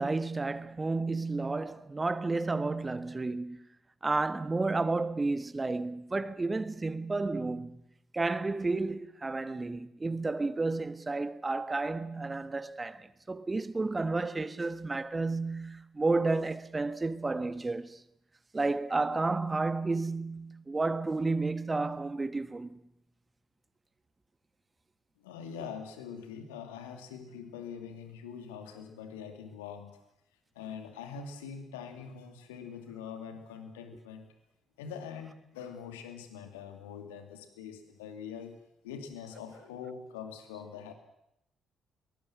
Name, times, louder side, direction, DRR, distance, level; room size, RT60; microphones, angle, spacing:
voice 1, 0.0-3.6 4.0-7.8 8.1-18.0 18.5-22.8, right 3 dB, 25° right, 1.4 m, -31 dB
voice 2, 25.2-30.0 30.5-34.3 34.8-38.6 38.8-40.9, left 7 dB, 80° left, 2.5 m, -43 dB
22.5 x 19.5 x 7.5 m
figure-of-eight pair, 45°, 0 cm